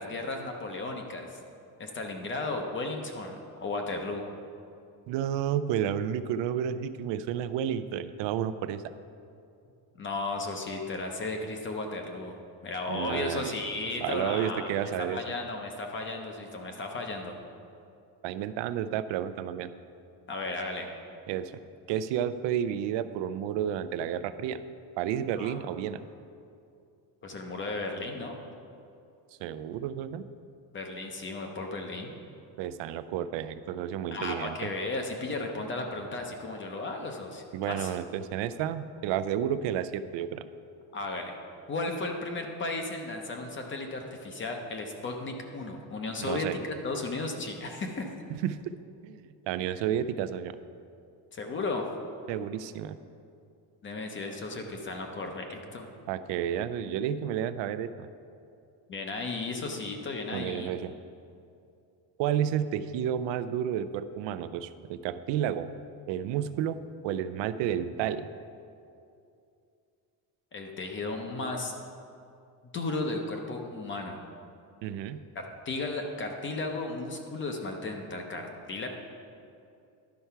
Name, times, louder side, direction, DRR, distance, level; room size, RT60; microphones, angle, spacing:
voice 1, 0.0-1.4 1.8-4.2 9.9-12.3 12.6-17.3 20.3-20.9 25.4-25.5 27.2-28.3 30.7-32.1 34.1-37.9 40.9-41.4 41.7-48.1 51.3-51.8 53.8-55.9 58.9-60.7 70.5-71.7 72.7-74.2 75.3-78.9, left 2 dB, 30° left, 3 dB, 0.6 m, -35 dB
voice 2, 5.1-8.9 12.9-13.6 14.0-15.2 18.2-19.7 21.3-21.5 21.9-24.6 25.0-26.1 29.4-30.2 32.6-34.7 37.5-40.4 46.2-46.6 48.3-48.6 49.0-50.6 52.3-53.0 56.1-58.1 60.3-60.9 62.2-65.7 66.1-66.8 67.0-68.3 74.8-75.2, right 9 dB, 85° right, 13 dB, 0.5 m, -31 dB
11.5 x 4.6 x 5.6 m, 2.6 s
cardioid pair, 180°, 43 cm